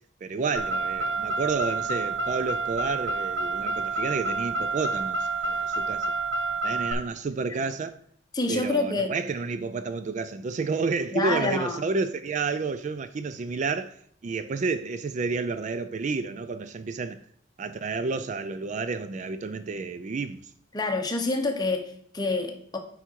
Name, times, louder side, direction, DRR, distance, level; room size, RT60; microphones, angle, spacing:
voice 1, 0.2-6.1 6.6-8.0 8.5-17.2 17.6-20.5, right 4 dB, 40° right, 0.3 m, -30 dB
Car, 0.6-6.9, right 3 dB, 80° right, 1.2 m, -29 dB
voice 2, 8.3-9.1 11.1-11.8 20.7-22.8, left 2 dB, 20° left, 1.1 m, -27 dB
8.0 x 4.9 x 4.5 m
head